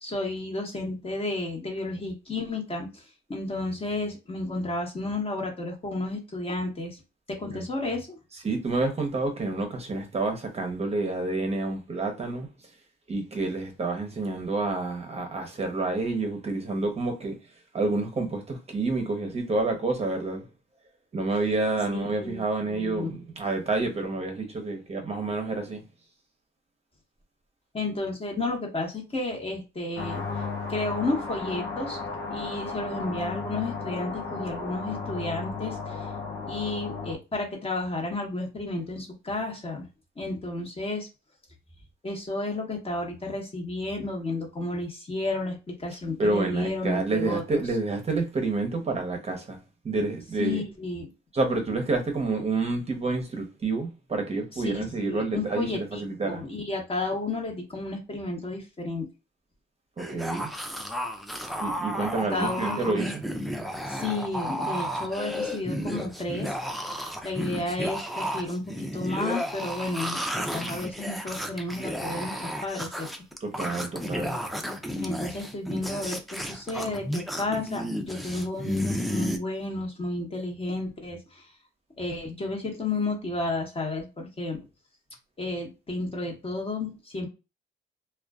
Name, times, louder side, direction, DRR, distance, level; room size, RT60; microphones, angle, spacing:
voice 1, 0.0-7.0 7.3-8.2 21.9-22.4 22.7-23.1 27.7-32.0 32.3-36.1 36.5-39.9 40.2-41.1 42.0-47.6 50.4-51.1 54.6-59.1 62.3-63.1 63.9-66.6 67.2-73.1 75.0-81.5 82.0-84.6 85.4-87.3, left 2 dB, 30° left, 0.9 m, -32 dB
voice 2, 8.3-12.5 13.1-17.3 17.7-20.4 21.1-25.8 46.2-49.6 49.8-50.6 51.3-56.4 60.0-60.5 61.6-63.2 73.4-74.4, right 3 dB, 30° right, 0.7 m, -28 dB
sound 1, 30.0-37.1, left 4 dB, 75° left, 0.8 m, -34 dB
sound 2, 60.0-79.4, equal, ahead, 0.4 m, -33 dB
2.4 x 2.2 x 2.2 m
cardioid pair, 90°, 20 cm